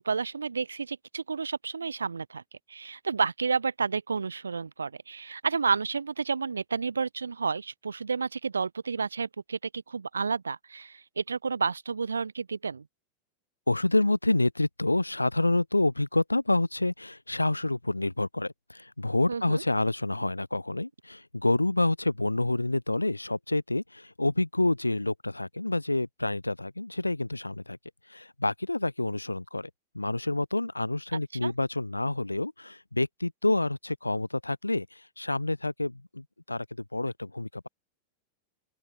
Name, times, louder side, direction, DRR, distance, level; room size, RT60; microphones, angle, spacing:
voice 1, 0.0-2.4 2.7-12.8 19.3-19.6 31.4-31.5, right 5 dB, 75° right, 0.9 m, -31 dB
voice 2, 13.7-27.8 28.1-36.7 36.9-37.7, left 2 dB, 85° left, 0.6 m, -28 dB
open air
figure-of-eight pair, 90°, 0 cm